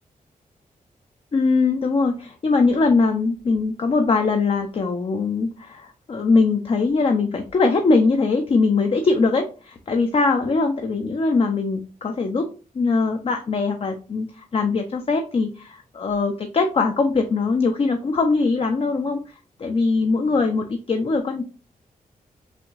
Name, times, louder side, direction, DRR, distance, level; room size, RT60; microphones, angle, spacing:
voice 1, 1.3-12.5 12.7-19.3 19.6-21.4, left 4 dB, 40° left, 5 dB, 0.5 m, -21 dB
5.8 x 2.6 x 2.4 m, 0.36 s
wide cardioid pair, 120°, 15 cm